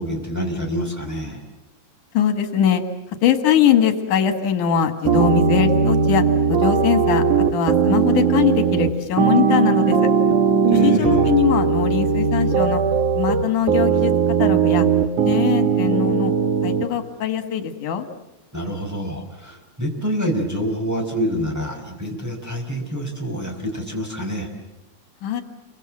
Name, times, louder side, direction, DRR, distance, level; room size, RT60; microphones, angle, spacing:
voice 1, 0.0-1.4 10.7-11.2 18.5-24.5, equal, 5° right, 1 dB, 5.0 m, -27 dB
voice 2, 2.1-2.8 3.2-7.2 7.5-10.1 10.7-12.8 13.1-14.1 14.4-14.9 15.2-16.3 16.6-18.1 25.2-25.4, left 9 dB, 85° left, 8 dB, 3.3 m, -21 dB
sound 1, 5.1-16.9, right 6 dB, 80° right, 3.3 m, -18 dB
30.0 x 24.5 x 7.6 m, 0.99 s
omnidirectional pair, 3.5 m